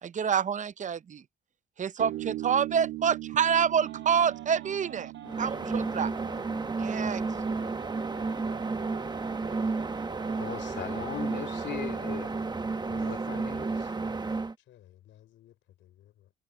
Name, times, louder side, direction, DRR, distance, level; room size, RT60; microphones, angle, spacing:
voice 1, 0.0-1.2 1.8-5.1 5.4-6.1 6.8-7.2, right 7 dB, 40° right, 0.6 m, -27 dB
sound 1, 2.0-9.0, right 16 dB, 85° right, 2.4 m, -41 dB
sound 2, 3.8-11.7, right 9 dB, 65° right, 1.4 m, -47 dB
sound 3, 5.2-14.5, right 3 dB, 20° right, 1.1 m, -32 dB
voice 2, 10.3-12.3 12.8-13.9, left 9 dB, 60° left, 2.6 m, -39 dB
voice 3, 11.8-13.2 14.6-16.3, left 12 dB, 80° left, 4.8 m, -56 dB
cardioid pair, 90°, 20 cm